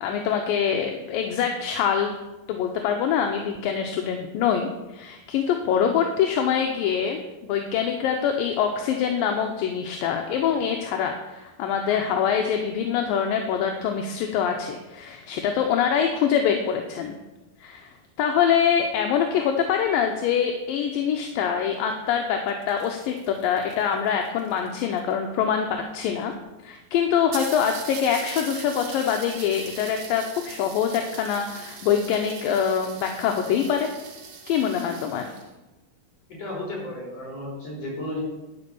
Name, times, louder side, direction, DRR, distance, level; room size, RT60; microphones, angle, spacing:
voice 1, 0.0-2.2 2.5-17.1 17.6-17.9 18.2-26.3 26.6-33.9 34.5-35.3, left 8 dB, 75° left, 3 dB, 2.4 m, -24 dB
sound 1, 22.3-25.1 26.0-26.1 26.3-26.4 26.8-26.9 27.3-35.5, right 6 dB, 75° right, 3.2 m, -41 dB
voice 2, 36.3-38.2, left 1 dB, 45° left, -3 dB, 4.8 m, -33 dB
12.0 x 5.2 x 7.1 m, 1.0 s
omnidirectional pair, 4.3 m